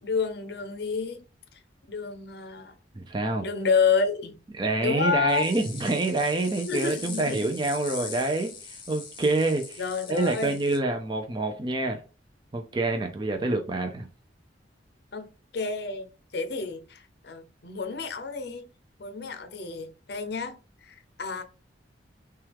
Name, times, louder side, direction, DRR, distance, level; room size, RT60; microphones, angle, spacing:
voice 1, 0.0-1.2 1.9-2.8 3.4-4.4 4.8-5.6 6.7-7.6 9.8-10.5 15.1-15.3 15.5-18.7 19.0-21.4, left 5 dB, 60° left, 0.6 m, -29 dB
voice 2, 3.0-3.4 4.6-9.8 10.1-12.0 12.5-14.1, right 2 dB, 25° right, 0.4 m, -27 dB
sound 1, 5.3-10.8, left 5 dB, 25° left, 0.9 m, -41 dB
5.9 x 2.3 x 3.4 m
head